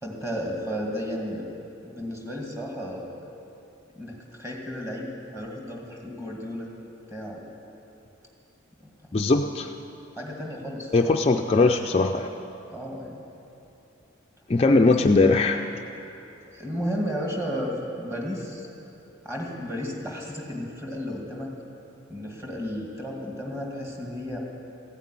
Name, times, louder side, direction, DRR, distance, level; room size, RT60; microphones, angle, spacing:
voice 1, 0.0-1.5 1.8-3.1 4.0-6.7 7.1-7.5 8.8-8.9 10.2-11.1 12.7-13.1 14.8-15.0 16.4-18.7 19.2-21.5 22.1-24.4, equal, 15° right, -1 dB, 2.1 m, -33 dB
voice 2, 9.1-9.7 10.9-12.3 14.5-15.7, left 3 dB, 30° left, 4 dB, 0.4 m, -20 dB
15.0 x 9.0 x 9.9 m, 3.0 s
head